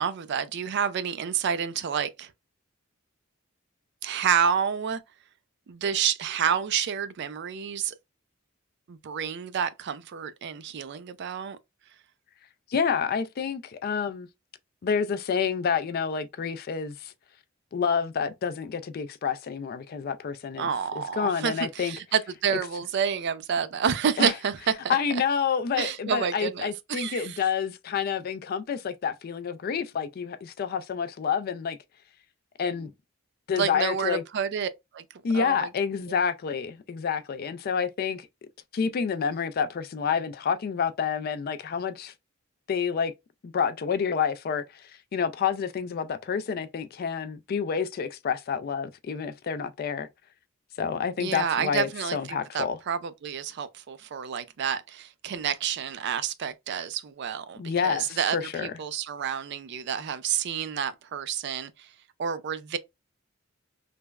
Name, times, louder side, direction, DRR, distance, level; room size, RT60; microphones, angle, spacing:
voice 1, 0.0-2.3 4.0-5.0 5.7-7.9 8.9-11.6 20.6-25.0 25.8-27.4 33.5-35.0 35.3-35.7 51.2-61.9 62.2-62.8, right 7 dB, 55° right, 0.4 m, -29 dB
voice 2, 12.7-14.3 14.8-17.1 17.7-20.7 21.1-21.9 22.5-22.6 24.2-24.3 24.9-31.8 32.6-32.9 33.5-34.2 35.2-38.3 38.7-42.1 42.7-43.1 43.4-50.1 50.8-52.8 57.6-58.7, left 6 dB, 45° left, 0.3 m, -28 dB
3.3 x 2.0 x 2.2 m
head